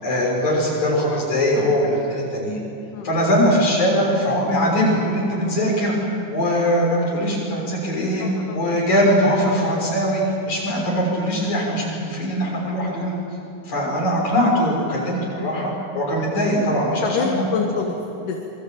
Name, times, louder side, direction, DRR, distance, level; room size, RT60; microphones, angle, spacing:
voice 1, 0.0-2.6 3.0-6.0 6.3-8.3 8.5-13.1 13.7-17.4, equal, 65° left, -2 dB, 7.8 m, -21 dB
voice 2, 8.2-8.8 13.8-14.0 17.0-18.4, left 5 dB, 85° left, 2 dB, 3.2 m, -27 dB
27.0 x 23.0 x 8.9 m, 2.9 s
omnidirectional pair, 3.6 m